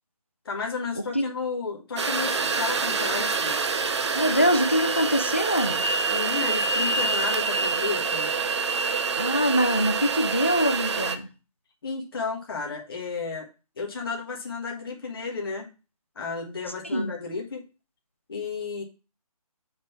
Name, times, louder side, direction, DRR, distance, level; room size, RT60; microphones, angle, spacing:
voice 1, 0.4-3.6 6.1-8.3 11.8-13.5 13.8-15.7 16.1-17.6 18.3-18.8, left 4 dB, 40° left, 1 dB, 1.4 m, -32 dB
sound 1, 2.0-11.2, right 4 dB, 45° right, 0.7 m, -26 dB
voice 2, 4.1-5.8 9.1-11.3 16.9-17.1, equal, 20° left, 8 dB, 0.4 m, -24 dB
6.5 x 3.6 x 5.6 m, 0.31 s
hypercardioid pair, 175°, 19 cm